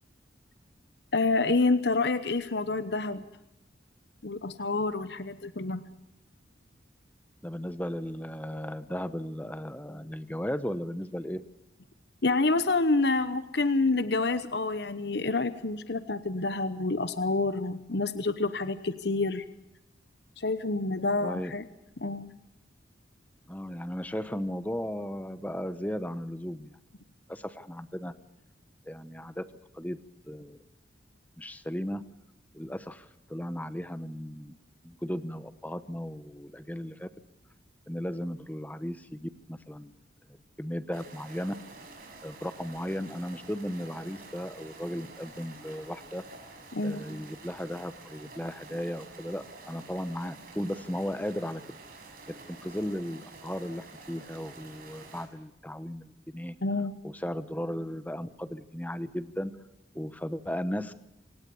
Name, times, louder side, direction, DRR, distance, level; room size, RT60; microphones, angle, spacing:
voice 1, 1.1-3.2 4.2-5.8 12.2-19.4 20.4-21.6 22.0-22.3 46.7-47.0 56.6-56.9, left 3 dB, 65° left, 12 dB, 1.0 m, -28 dB
voice 2, 7.4-11.4 21.2-21.5 23.5-26.7 27.3-28.1 28.9-29.5 29.7-30.0 30.3-30.6 31.4-32.0 32.5-34.5 34.8-37.1 37.9-39.9 40.3-41.5 42.2-46.2 46.8-51.6 52.5-56.6 57.0-59.5 59.9-60.9, equal, 10° left, 13 dB, 1.0 m, -36 dB
sound 1, 40.9-55.3, right 3 dB, 50° right, 6.2 m, -49 dB
27.5 x 18.0 x 7.0 m, 0.89 s
head